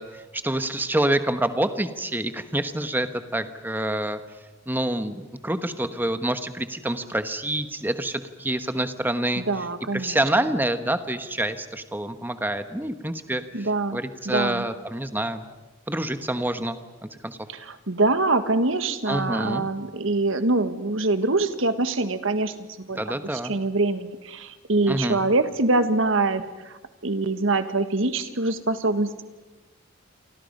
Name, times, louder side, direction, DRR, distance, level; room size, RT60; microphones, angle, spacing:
voice 1, 0.0-4.2 4.7-9.4 9.9-15.5 15.9-17.4 19.1-19.6 22.9-23.5 24.9-25.2, right 1 dB, 10° right, 9 dB, 1.2 m, -27 dB
voice 2, 9.4-10.2 13.5-14.6 17.5-23.0 23.5-29.2, right 2 dB, 70° right, 10 dB, 1.6 m, -24 dB
29.0 x 25.0 x 5.4 m, 1.2 s
head